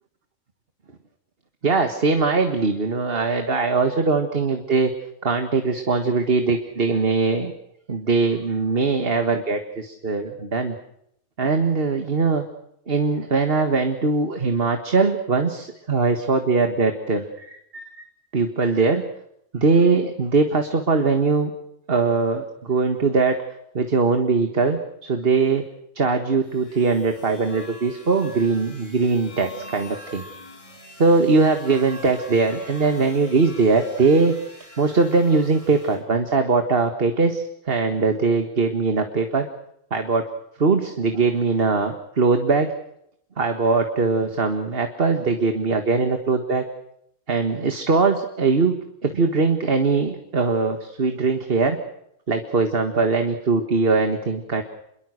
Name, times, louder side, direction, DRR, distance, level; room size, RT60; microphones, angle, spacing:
voice 1, 1.6-4.9 5.2-7.5 7.9-10.8 11.4-12.5 12.9-18.0 18.3-19.0 19.5-21.5 21.9-23.4 23.8-25.6 26.0-30.2 31.0-34.3 34.8-39.5 39.9-40.2 40.6-42.7 43.4-46.6 47.3-48.8 49.0-51.8 52.3-54.6, right 4 dB, 45° right, 6 dB, 1.8 m, -21 dB
sound 1, 26.4-36.0, left 1 dB, 25° left, 5.7 m, -44 dB
28.0 x 22.0 x 6.5 m, 0.75 s
omnidirectional pair, 1.4 m